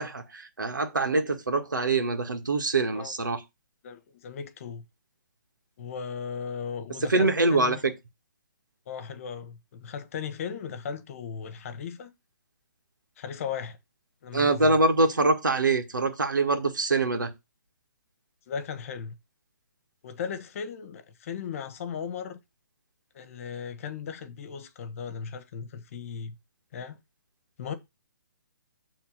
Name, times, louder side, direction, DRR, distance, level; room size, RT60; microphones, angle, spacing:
voice 1, 0.0-3.4 7.1-7.9 14.3-17.3, right 3 dB, 85° right, 2.0 m, -24 dB
voice 2, 3.8-4.8 5.8-7.8 8.9-12.1 13.2-13.8 14.2-14.8 18.5-19.1 20.0-22.4 23.1-26.3 26.7-27.0 27.6-27.7, left 7 dB, 45° left, 1.5 m, -37 dB
7.2 x 3.8 x 6.5 m
figure-of-eight pair, 135°, 10 cm